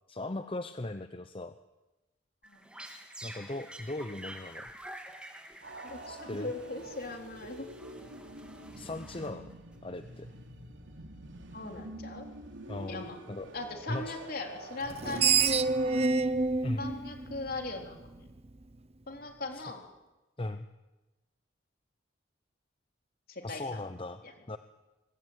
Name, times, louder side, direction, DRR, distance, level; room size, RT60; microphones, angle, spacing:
voice 1, 0.1-1.6 3.2-4.7 6.1-6.5 8.8-9.5 9.8-10.3 12.7-13.5 13.9-14.2 16.6-16.9 19.5-19.7 20.4-20.7 23.4-24.2 24.5-24.6, left 2 dB, 30° left, 9 dB, 0.8 m, -38 dB
sound 1, 2.4-9.7, right 1 dB, 5° right, 3.1 m, -49 dB
sound 2, 5.6-16.1, right 1 dB, 90° right, 3.5 m, -47 dB
voice 2, 5.8-7.7 11.5-12.3 12.9-13.2 13.5-15.4 16.8-18.3 19.1-19.8 23.3-23.8 24.2-24.3, left 2 dB, 55° left, 3 dB, 4.0 m, -39 dB
Screech, 14.9-18.1, right 4 dB, 35° right, 0.9 m, -28 dB
25.0 x 20.5 x 9.0 m, 1.1 s
head